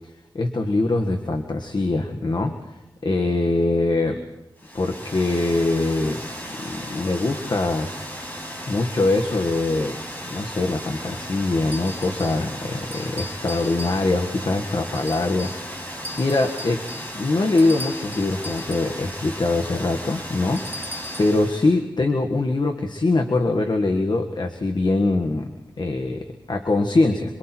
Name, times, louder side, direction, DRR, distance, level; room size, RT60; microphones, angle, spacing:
voice 1, 0.3-2.6 3.0-4.2 4.7-6.2 6.6-7.9 8.7-9.9 10.3-16.8 17.1-25.5 25.8-27.4, left 2 dB, 60° left, 4 dB, 1.7 m, -23 dB
Water, 4.6-21.8, equal, 20° left, 5.9 m, -35 dB
sound 1, 11.7-12.5 12.9-14.3 14.9-15.7 16.0-19.0 20.6-21.4, left 2 dB, 20° right, 1.9 m, -38 dB
28.0 x 23.5 x 4.6 m, 0.99 s
wide cardioid pair, 70°, 8 cm